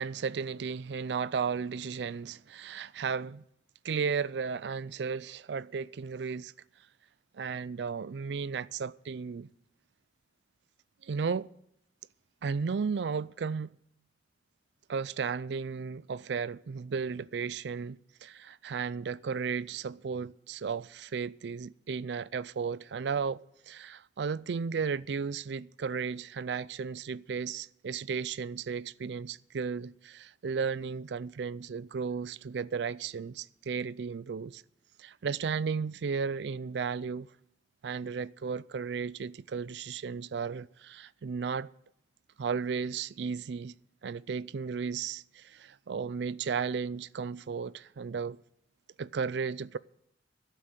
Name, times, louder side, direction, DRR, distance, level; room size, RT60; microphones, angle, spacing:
voice 1, 0.0-3.4 3.8-6.5 7.3-9.5 11.0-11.5 12.4-13.7 14.9-23.4 23.7-34.6 35.0-37.3 37.8-41.7 42.4-43.7 44.0-48.4 49.0-49.8, right 5 dB, 75° right, 0.4 m, -34 dB
12.5 x 7.8 x 8.1 m
head